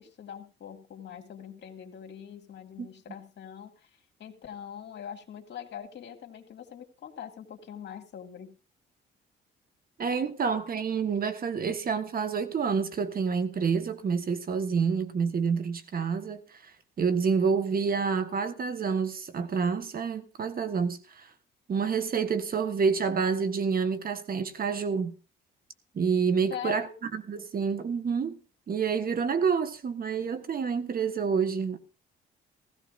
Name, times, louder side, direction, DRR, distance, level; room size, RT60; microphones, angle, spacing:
voice 1, 0.0-8.5 26.5-26.9, left 8 dB, 60° left, 2.3 m, -43 dB
voice 2, 10.0-16.7 17.0-21.3 21.7-25.1 25.9-26.9 27.1-28.4 28.7-31.8, right 6 dB, 45° right, 1.4 m, -28 dB
16.0 x 16.0 x 2.6 m
cardioid pair, 90°, 20 cm